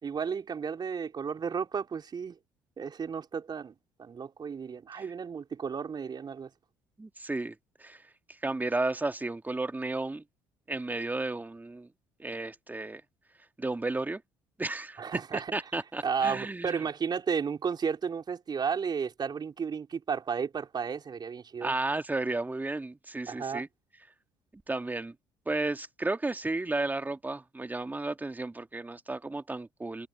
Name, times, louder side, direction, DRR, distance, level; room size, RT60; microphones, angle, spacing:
voice 1, 0.0-2.3 2.8-3.7 4.0-6.5 15.0-15.5 16.0-21.7 23.3-23.6, right 6 dB, 40° right, 4.1 m, -33 dB
voice 2, 7.0-7.6 7.8-8.0 8.4-10.2 10.7-11.9 12.2-13.0 13.6-14.2 14.6-15.0 15.3-16.8 21.6-23.7 24.7-25.1 25.5-30.1, right 2 dB, 15° right, 2.0 m, -33 dB
hypercardioid pair, 55°, 11 cm